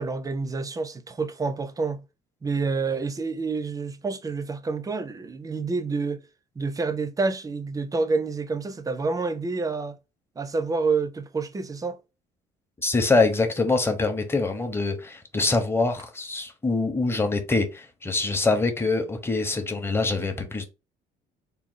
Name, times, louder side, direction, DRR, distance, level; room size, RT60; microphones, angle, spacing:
voice 1, 0.0-2.0 2.4-6.2 6.6-10.0 10.4-12.0, right 4 dB, 20° right, 0.5 m, -28 dB
voice 2, 12.8-20.7, left 3 dB, 15° left, 0.8 m, -24 dB
3.7 x 2.3 x 3.7 m
cardioid pair, 110°, 17 cm